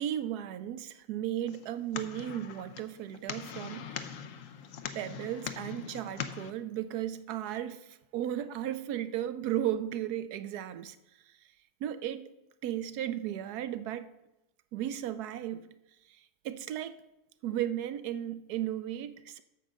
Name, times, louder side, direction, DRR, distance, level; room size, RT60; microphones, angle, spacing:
voice 1, 0.0-4.1 4.9-11.0 11.8-12.3 12.6-14.1 14.7-15.7 16.1-17.0 17.4-19.4, right 11 dB, 80° right, 12 dB, 1.2 m, -35 dB
sound 1, 1.5-6.5, left 7 dB, 65° left, 1.0 m, -42 dB
8.6 x 6.7 x 6.2 m, 0.91 s
omnidirectional pair, 1.6 m